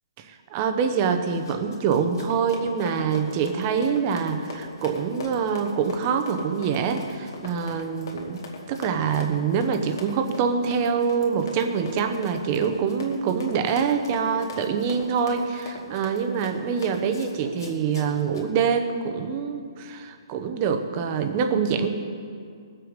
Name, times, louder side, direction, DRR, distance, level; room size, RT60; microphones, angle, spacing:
voice 1, 0.2-8.4 8.7-21.9, right 6 dB, 20° right, 7 dB, 0.7 m, -25 dB
Run, 1.3-18.5, left 3 dB, 45° left, 2.2 m, -41 dB
21.0 x 7.9 x 5.2 m, 2.2 s
hypercardioid pair, 175°, 3 cm